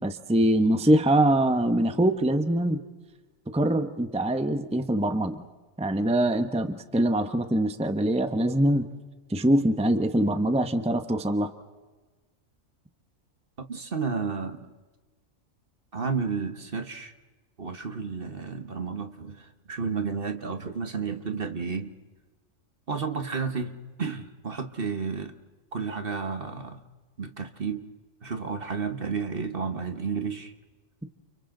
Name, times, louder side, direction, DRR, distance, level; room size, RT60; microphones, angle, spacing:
voice 1, 0.0-2.8 3.5-5.4 5.8-8.9 9.3-11.5, right 1 dB, 5° right, 8 dB, 0.9 m, -23 dB
voice 2, 13.7-14.7 15.9-17.1 17.6-21.9 22.9-25.3 25.7-26.8 27.2-27.9 28.2-30.5, right 5 dB, 45° right, 8 dB, 1.5 m, -32 dB
29.5 x 29.5 x 3.9 m, 1.3 s
omnidirectional pair, 1.4 m